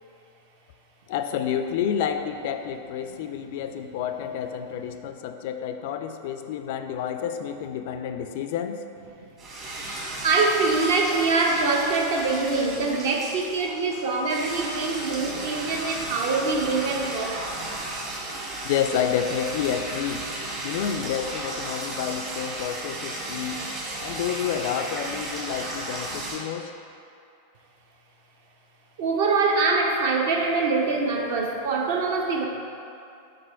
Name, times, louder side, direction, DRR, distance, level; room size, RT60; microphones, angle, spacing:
voice 1, 1.1-8.8 18.6-20.3 20.6-23.7 24.0-26.7, left 8 dB, 50° left, 7 dB, 0.3 m, -29 dB
sound 1, 9.4-26.4, right 2 dB, 35° right, 1.3 m, -34 dB
voice 2, 10.2-17.4 29.0-32.4, right 3 dB, 50° right, 1 dB, 0.7 m, -24 dB
5.1 x 4.2 x 4.4 m, 2.7 s
figure-of-eight pair, 90°, 0 cm